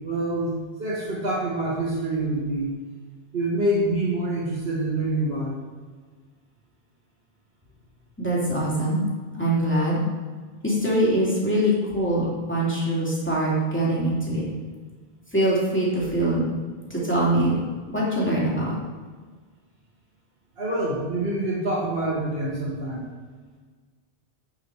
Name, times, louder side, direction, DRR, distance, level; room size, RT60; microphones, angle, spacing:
voice 1, 0.0-0.5 0.8-2.7 3.3-5.6 20.6-23.0, right 1 dB, 65° right, -7 dB, 2.0 m, -26 dB
voice 2, 8.2-9.0 9.3-10.0 10.6-14.4 15.3-16.4 16.9-17.6 17.9-18.7, right 1 dB, 10° left, -6 dB, 2.9 m, -23 dB
8.5 x 7.2 x 4.8 m, 1.5 s
omnidirectional pair, 1.1 m